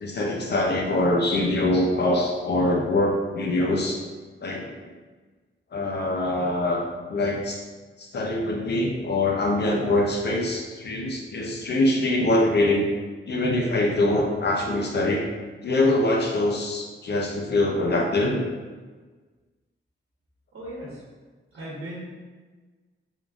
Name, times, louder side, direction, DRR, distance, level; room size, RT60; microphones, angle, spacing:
voice 1, 0.0-4.0 4.4-4.8 5.7-6.8 7.1-7.6 8.0-12.9 13.3-15.3 15.6-18.4, left 1 dB, 55° left, 0 dB, 0.5 m, -23 dB
voice 2, 20.5-21.0 21.5-22.0, right 1 dB, 85° right, -7 dB, 1.0 m, -37 dB
3.6 x 3.5 x 2.5 m, 1.4 s
wide cardioid pair, 120°, 21 cm